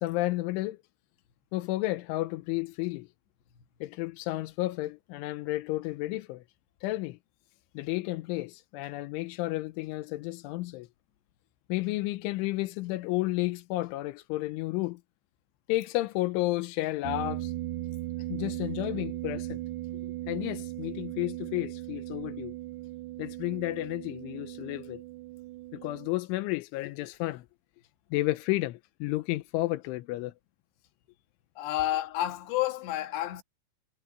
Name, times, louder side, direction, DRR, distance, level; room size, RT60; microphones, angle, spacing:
voice 1, 0.0-0.8 1.5-3.1 3.8-6.4 6.8-7.2 7.8-10.9 11.7-15.0 15.7-17.5 18.3-19.6 20.3-22.5 23.2-25.0 25.7-27.5 28.1-30.3, left 18 dB, 90° left, 3.3 m, -32 dB
sound 1, 17.0-26.1, right 16 dB, 80° right, 2.5 m, -38 dB
voice 2, 31.6-33.4, left 14 dB, 70° left, 3.4 m, -30 dB
omnidirectional pair, 5.5 m